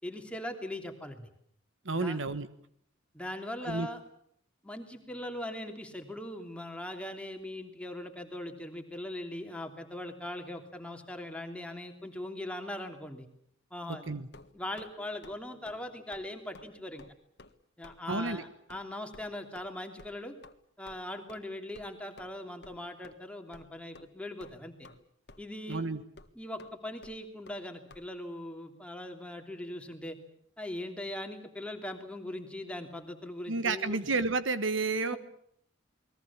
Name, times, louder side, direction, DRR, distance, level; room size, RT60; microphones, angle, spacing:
voice 1, 0.0-1.3 1.9-2.2 3.1-4.0 4.6-13.3 13.7-14.2 14.5-17.0 17.8-20.4 20.8-24.9 25.4-25.9 26.3-30.2 30.6-34.1, left 1 dB, 5° left, 4 dB, 3.1 m, -40 dB
voice 2, 1.8-2.5 3.6-3.9 13.9-14.3 18.1-18.4 25.7-26.0 33.5-35.2, right 3 dB, 65° right, 12 dB, 1.3 m, -31 dB
sound 1, 14.3-14.9 15.2-15.4 15.6-15.8 16.1-16.3 16.5-16.7 17.0-17.1 17.4-17.5 17.8-18.0 18.3-18.4 18.7-18.8 19.1-19.2 19.5-19.7 20.0-20.1 20.4-20.5 20.9-21.0 21.3-21.4 21.7-21.9 22.2-22.3 22.6-22.8 23.0-23.1 23.5-23.7 23.9-24.1 24.4-25.0 25.3-25.5 25.7-25.8 26.2-26.3 26.6-26.7 27.0-27.1 27.5-27.6 27.9-28.0, left 2 dB, 55° left, 1.7 m, -52 dB
29.5 x 21.5 x 7.3 m, 0.68 s
head